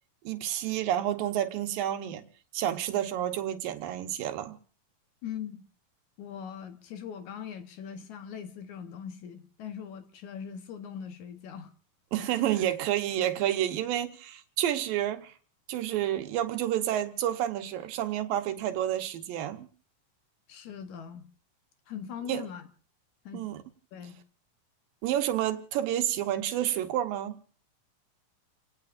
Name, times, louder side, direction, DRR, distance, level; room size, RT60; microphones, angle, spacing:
voice 1, 0.2-2.2 2.5-4.6 12.1-15.3 15.7-19.7 22.3-22.4 23.3-23.6 25.0-27.4, right 11 dB, 85° right, 2.8 m, -29 dB
voice 2, 5.2-5.6 6.2-11.7 12.3-12.4 20.5-21.3 21.9-22.7 23.3-23.5 23.9-24.2, left 8 dB, 65° left, 2.3 m, -41 dB
29.0 x 18.0 x 2.6 m
omnidirectional pair, 3.9 m